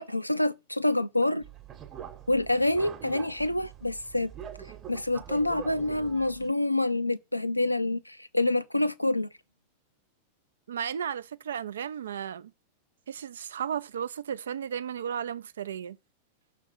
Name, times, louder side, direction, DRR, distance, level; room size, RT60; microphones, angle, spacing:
voice 1, 0.0-1.4 2.3-4.3 4.9-9.3, left 2 dB, 85° left, 0.4 m, -27 dB
sound 1, 1.4-6.5, right 8 dB, 30° right, 1.0 m, -44 dB
voice 2, 10.7-12.5 13.1-16.0, right 8 dB, 65° right, 0.4 m, -34 dB
6.2 x 3.4 x 5.6 m
figure-of-eight pair, 90°, 0 cm